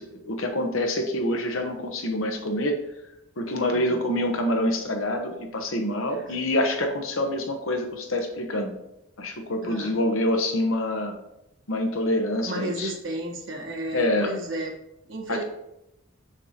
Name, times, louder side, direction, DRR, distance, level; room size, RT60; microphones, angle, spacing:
voice 1, 0.0-2.8 3.4-8.7 9.2-11.1 11.7-12.9 13.9-14.3 15.3-15.4, left 1 dB, 70° left, 3 dB, 1.0 m, -26 dB
voice 2, 9.6-10.0 12.5-14.7 15.1-15.4, right 1 dB, 65° right, 0 dB, 1.2 m, -33 dB
6.5 x 6.2 x 2.9 m, 0.87 s
head